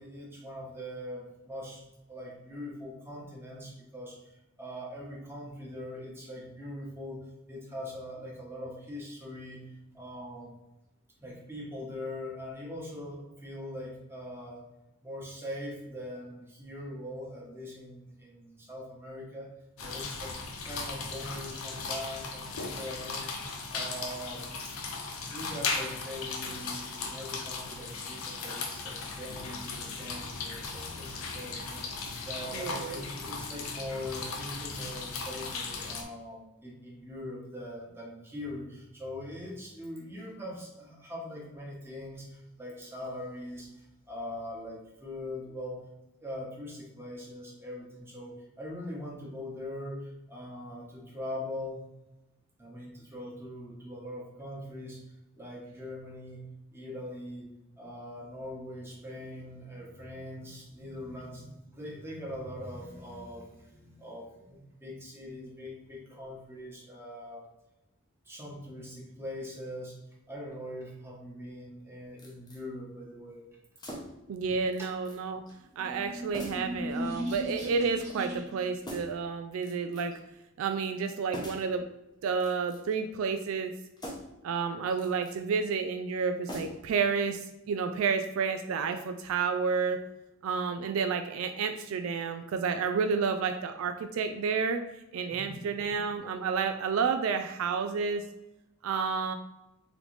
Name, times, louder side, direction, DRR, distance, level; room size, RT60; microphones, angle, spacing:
voice 1, 0.0-7.2 7.5-10.5 11.2-14.6 15.0-19.5 19.8-24.8 25.3-31.9 32.2-45.8 46.2-51.8 52.6-55.0 55.4-56.4 56.7-57.5 57.7-67.5 68.2-69.9 70.3-73.4 95.3-95.6, left 1 dB, 10° right, -4 dB, 1.2 m, -42 dB
sound 1, 19.8-36.0, left 4 dB, 70° left, 0.6 m, -37 dB
voice 2, 32.5-33.0 74.3-75.4 75.8-80.2 80.6-81.9 82.2-83.7 84.4-90.0 90.4-94.8 95.1-98.2 98.8-99.3, right 5 dB, 65° right, 7 dB, 0.3 m, -30 dB
sound 2, 72.2-72.6 73.8-74.3 74.7-75.2 75.5-75.6 76.3-76.7 77.3-77.8 78.8-79.3 79.6-80.2 81.3-81.7 82.3-83.0 84.0-84.4 84.9-85.4 86.5-87.0 87.3-87.4, equal, 20° left, 0.8 m, -43 dB
sound 3, 75.6-78.7, equal, 35° right, 1.3 m, -37 dB
3.8 x 3.3 x 3.2 m, 0.95 s
head